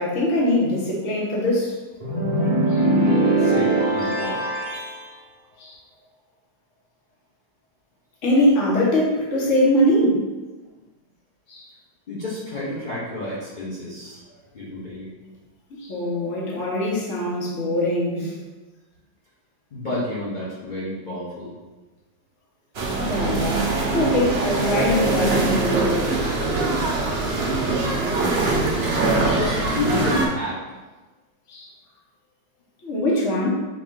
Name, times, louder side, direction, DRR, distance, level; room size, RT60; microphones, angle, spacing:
voice 1, 0.0-1.8 2.7-2.8 5.6-5.8 8.2-10.2 11.5-11.7 15.8-18.4 23.0-26.0 28.5-28.9 31.5-31.7 32.8-33.5, left 1 dB, 45° left, -5 dB, 1.3 m, -22 dB
sound 1, 2.0-5.0, right 2 dB, 30° right, 0.7 m, -21 dB
voice 2, 3.4-4.4 12.1-14.2 14.5-15.1 19.7-21.5 29.2-30.8, left 2 dB, 75° left, -8 dB, 0.4 m, -30 dB
sound 2, 22.7-30.3, right 2 dB, 90° right, 0.5 m, -22 dB
5.5 x 2.6 x 3.7 m, 1.2 s
omnidirectional pair, 2.2 m